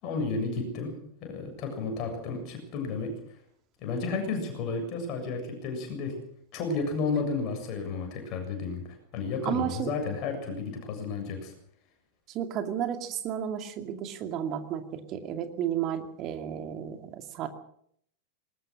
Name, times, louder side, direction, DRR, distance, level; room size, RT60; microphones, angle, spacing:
voice 1, 0.0-3.1 3.8-6.1 6.5-11.5, left 4 dB, 40° left, 4 dB, 7.4 m, -32 dB
voice 2, 9.4-9.9 12.3-17.5, right 9 dB, 35° right, 7 dB, 2.4 m, -32 dB
21.0 x 19.5 x 6.5 m, 0.69 s
figure-of-eight pair, 90°, 0 cm